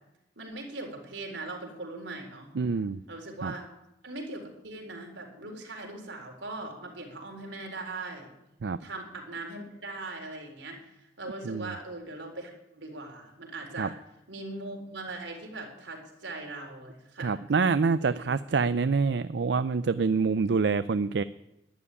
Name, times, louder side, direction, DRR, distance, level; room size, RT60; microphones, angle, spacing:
voice 1, 0.4-2.5 3.1-3.7 4.0-8.3 8.8-14.0 14.3-17.4 18.0-18.2, right 2 dB, 90° right, 2 dB, 4.0 m, -40 dB
voice 2, 2.6-3.0 3.4-3.5 8.6-8.8 11.5-11.7 13.8-13.9 17.2-21.2, right 4 dB, 70° right, 14 dB, 0.5 m, -26 dB
12.5 x 11.0 x 9.8 m, 0.88 s
head